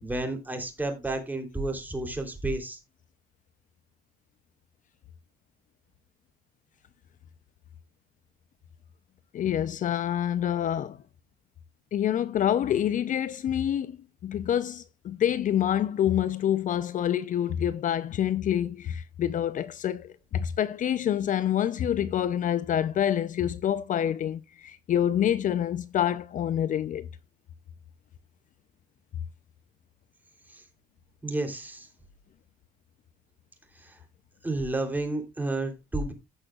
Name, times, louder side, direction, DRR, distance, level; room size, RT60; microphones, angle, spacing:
voice 1, 0.0-2.8 30.5-30.6 31.2-31.9 33.8-34.0 34.4-36.1, right 2 dB, 10° right, 3.3 m, -31 dB
voice 2, 9.3-11.0 11.9-27.1, left 10 dB, 50° left, 0.6 m, -27 dB
15.5 x 6.4 x 2.4 m
cardioid pair, 110°, 17 cm